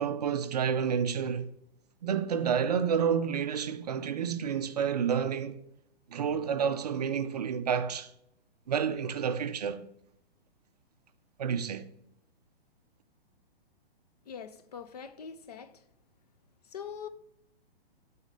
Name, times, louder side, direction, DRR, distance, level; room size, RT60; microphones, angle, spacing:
voice 1, 0.0-1.5 2.0-5.6 6.1-8.1 8.7-9.8 11.4-11.9, right 7 dB, 45° right, 0.4 m, -29 dB
voice 2, 14.2-15.9 16.6-17.1, left 7 dB, 40° left, 0.5 m, -43 dB
8.6 x 4.2 x 5.2 m
hypercardioid pair, 170°, 30 cm